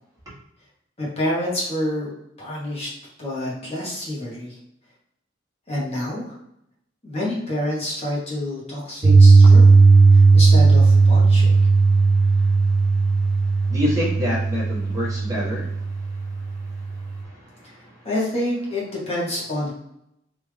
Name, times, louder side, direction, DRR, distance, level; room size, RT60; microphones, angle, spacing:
voice 1, 1.0-2.1 2.4-2.9 3.2-4.6 5.7-6.4 7.0-9.7 10.1-11.5 17.6-19.7, left 1 dB, 35° left, -6 dB, 1.0 m, -28 dB
Piano, 9.0-17.1, right 4 dB, 85° right, 0.6 m, -15 dB
voice 2, 10.0-10.4 11.6-18.1, left 1 dB, 20° right, -7 dB, 1.3 m, -31 dB
3.4 x 2.6 x 3.2 m, 0.78 s
head